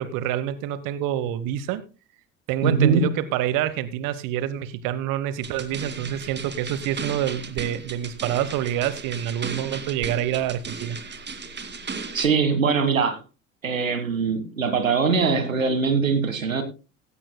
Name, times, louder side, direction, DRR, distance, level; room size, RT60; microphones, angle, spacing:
voice 1, 0.0-1.8 2.5-11.0, right 11 dB, 55° right, 1.1 m, -27 dB
voice 2, 2.6-3.1 12.1-13.2 13.6-16.6, right 5 dB, 90° right, 1.6 m, -22 dB
sound 1, 5.4-12.2, right 4 dB, 25° right, 2.3 m, -36 dB
16.5 x 15.0 x 2.2 m
figure-of-eight pair, 65°, 39 cm